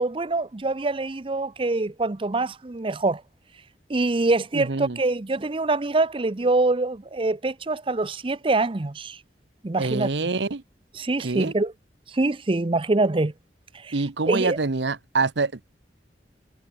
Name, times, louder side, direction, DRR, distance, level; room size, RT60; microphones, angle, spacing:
voice 1, 0.0-3.2 3.9-9.2 9.6-10.1 10.9-11.7 12.1-13.3 13.7-14.0 14.3-14.6, right 2 dB, 30° right, 0.6 m, -24 dB
voice 2, 4.5-5.0 9.8-10.6 11.2-11.5 13.9-15.6, right 3 dB, 85° right, 1.0 m, -26 dB
head